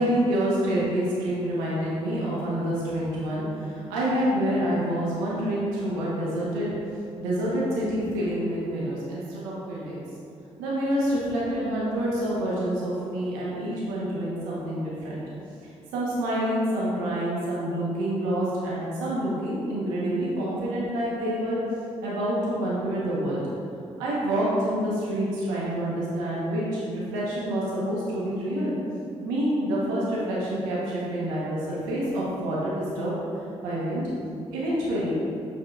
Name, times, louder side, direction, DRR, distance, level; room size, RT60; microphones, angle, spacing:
voice 1, 0.0-6.7 7.2-10.0 10.6-15.2 15.9-21.6 22.0-23.4 24.0-28.8 29.2-33.1 33.6-34.0 34.5-35.1, right 1 dB, 85° right, -6 dB, 1.4 m, -27 dB
7.2 x 5.5 x 2.6 m, 2.5 s
hypercardioid pair, 45°, 14 cm